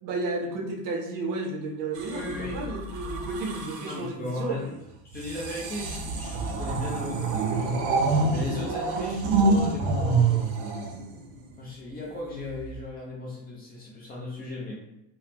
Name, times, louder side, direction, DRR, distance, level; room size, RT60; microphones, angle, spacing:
voice 1, 0.0-4.6, right 3 dB, 50° right, 1 dB, 0.6 m, -32 dB
sound 1, 1.9-4.1 5.1-11.5 12.5-12.8, right 3 dB, 90° right, 0.7 m, -27 dB
voice 2, 2.1-2.6 3.8-4.8 5.1-7.7 8.3-10.5 11.6-14.8, left 2 dB, 25° left, -4 dB, 0.4 m, -36 dB
3.4 x 2.0 x 2.8 m, 0.88 s
cardioid pair, 165°, 42 cm